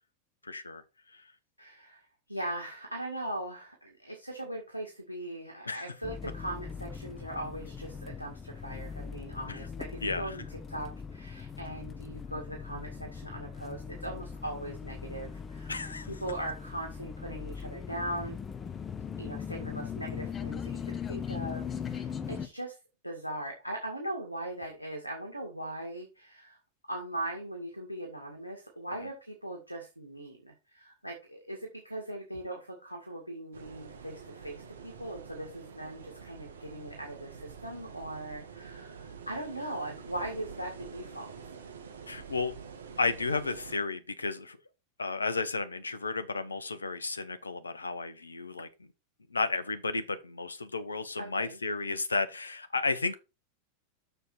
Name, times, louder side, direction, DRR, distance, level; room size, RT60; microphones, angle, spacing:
voice 1, 0.4-0.8 1.1-1.2 5.6-5.8 9.5-9.6 10.0-10.4 15.7-16.1 42.1-42.5 43.0-44.6 45.0-48.7 49.3-53.1, left 3 dB, 75° left, 1.0 m, -33 dB
voice 2, 1.6-18.4 19.2-22.8 23.0-26.6 26.9-41.3 51.2-51.6, right 1 dB, 90° right, 2.1 m, -40 dB
sound 1, 6.0-22.5, left 6 dB, 20° left, 0.9 m, -40 dB
sound 2, 33.5-43.8, right 6 dB, 65° right, 2.0 m, -47 dB
6.9 x 6.8 x 4.4 m
figure-of-eight pair, 90°, 0 cm